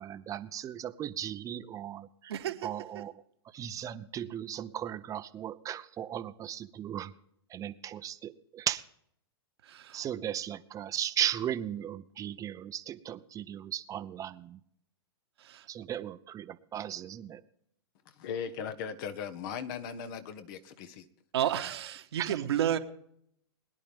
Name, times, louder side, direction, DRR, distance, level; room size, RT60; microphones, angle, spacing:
voice 1, 0.0-2.3 2.6-3.1 3.5-7.1 7.5-8.8 9.9-14.6 15.7-17.4 22.2-22.4, right 10 dB, 25° right, 12 dB, 0.7 m, -36 dB
voice 2, 2.3-2.7 9.6-10.0 15.4-15.7 21.3-22.8, right 10 dB, 70° right, 5 dB, 1.5 m, -31 dB
voice 3, 18.2-21.0, left 7 dB, 50° left, 10 dB, 1.4 m, -38 dB
21.5 x 10.5 x 3.6 m, 0.68 s
hypercardioid pair, 115°, 14 cm